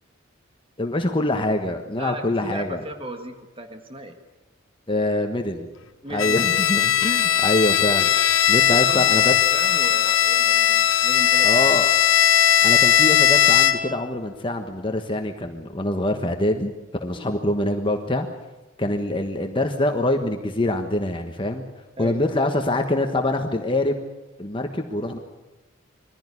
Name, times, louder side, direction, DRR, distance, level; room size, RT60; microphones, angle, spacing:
voice 1, 0.8-2.8 4.9-5.7 6.1-9.3 11.4-11.9 12.6-16.7 17.0-18.3 18.8-21.6 22.0-24.0 24.4-25.2, left 1 dB, 25° left, 5 dB, 1.3 m, -24 dB
voice 2, 1.9-4.2 6.0-6.6 8.7-11.9 17.1-17.4 22.0-22.2, right 1 dB, 25° right, 6 dB, 1.7 m, -37 dB
Bowed string instrument, 6.2-14.0, left 10 dB, 70° left, 1.1 m, -18 dB
22.5 x 15.5 x 9.8 m, 1.1 s
head